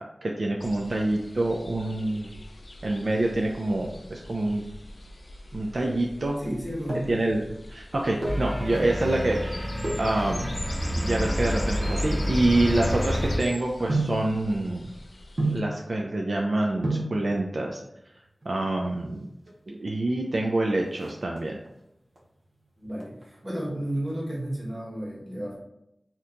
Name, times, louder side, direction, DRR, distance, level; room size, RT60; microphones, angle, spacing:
voice 1, 0.2-2.3 2.8-4.6 5.5-6.4 7.1-10.4 11.0-14.9 15.5-17.8 18.5-19.3 19.7-21.6, right 2 dB, 70° right, 0 dB, 0.3 m, -26 dB
sound 1, 0.6-15.6, left 1 dB, 60° left, 0.4 m, -43 dB
voice 2, 6.4-7.2 22.8-25.6, right 1 dB, 30° right, -6 dB, 1.4 m, -32 dB
sound 2, 6.5-7.3 8.0-8.5 9.8-10.2 10.9-13.3 13.9-14.3 15.4-15.8 16.5-16.6 16.8-17.2 18.3-18.8 19.1-19.2 19.5-19.6 20.0-20.4 20.7-21.7 22.2-22.6 22.9-24.1 24.4-24.5, right 2 dB, 85° right, 0.8 m, -31 dB
sound 3, 8.2-13.4, equal, 5° right, 0.7 m, -28 dB
2.8 x 2.2 x 3.7 m, 0.82 s
wide cardioid pair, 70°, 0 cm